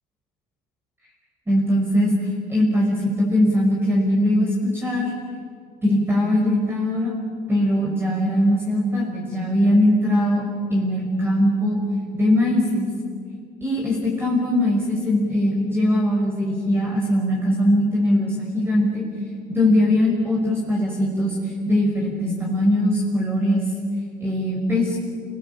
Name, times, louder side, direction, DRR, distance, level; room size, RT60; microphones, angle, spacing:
voice 1, 1.5-2.1 2.5-5.1 5.8-7.1 7.5-10.4 10.7-11.8 12.1-12.9 13.6-19.1 19.5-23.6 24.2-25.0, left 1 dB, 15° right, -3 dB, 5.7 m, -20 dB
26.5 x 20.0 x 8.9 m, 2.3 s
cardioid pair, 110°, 17 cm